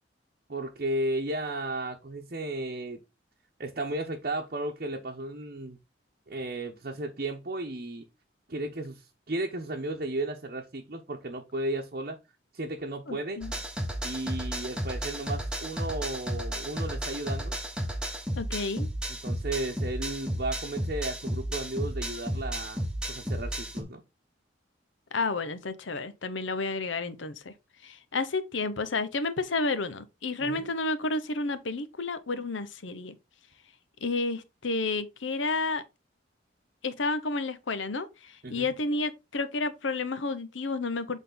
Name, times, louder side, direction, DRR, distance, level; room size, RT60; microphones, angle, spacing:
voice 1, 0.5-3.0 3.6-5.8 6.3-8.1 8.5-12.2 12.5-13.5 14.0-17.6 19.1-24.0 30.4-30.7 38.4-38.7, right 2 dB, 50° right, 0.9 m, -34 dB
voice 2, 13.1-13.5 18.4-18.9 25.1-27.5 27.8-33.1 34.0-35.8 36.8-41.2, left 3 dB, 80° left, 0.9 m, -31 dB
sound 1, 13.4-23.8, right 1 dB, 5° right, 1.1 m, -33 dB
8.1 x 3.7 x 3.9 m
head